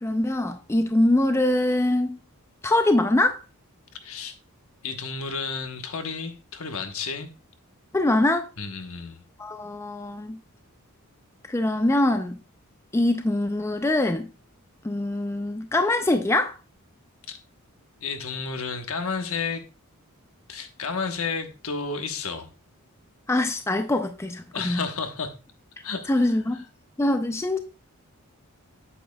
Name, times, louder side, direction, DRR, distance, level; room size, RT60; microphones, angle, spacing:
voice 1, 0.0-2.2 2.6-3.4 7.9-8.5 9.4-10.4 11.5-12.4 12.9-14.3 14.8-16.6 23.3-24.8 26.1-26.6 27.0-27.6, left 1 dB, 10° left, 0.4 m, -23 dB
voice 2, 4.0-4.3 4.8-7.3 8.6-9.2 17.3-17.4 18.0-19.6 20.5-22.5 24.5-25.3 25.8-26.6, left 5 dB, 70° left, 1.1 m, -32 dB
8.6 x 7.4 x 2.2 m
head